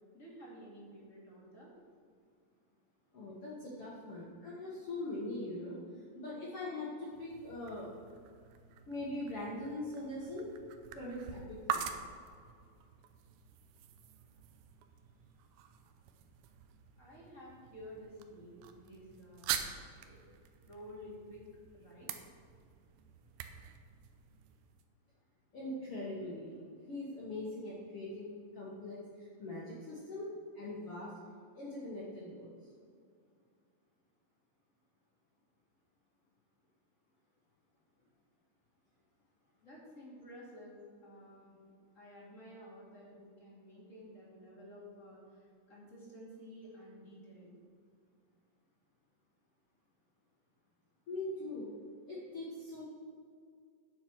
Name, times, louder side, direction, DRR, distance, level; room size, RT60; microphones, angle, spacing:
voice 1, 0.1-1.7 17.0-19.6 20.0-20.3 20.7-21.4 21.7-22.1 39.6-41.6 41.9-47.7, equal, 25° left, -6 dB, 2.1 m, -52 dB
voice 2, 3.1-7.9 8.9-10.5 10.9-11.8 25.5-26.6 26.9-31.1 31.5-32.7 51.1-51.7 52.1-52.8, left 1 dB, 70° left, -6 dB, 1.4 m, -42 dB
sound 1, 7.0-24.8, right 9 dB, 85° right, 2.1 m, -45 dB
9.2 x 7.1 x 6.2 m, 2.2 s
omnidirectional pair, 4.9 m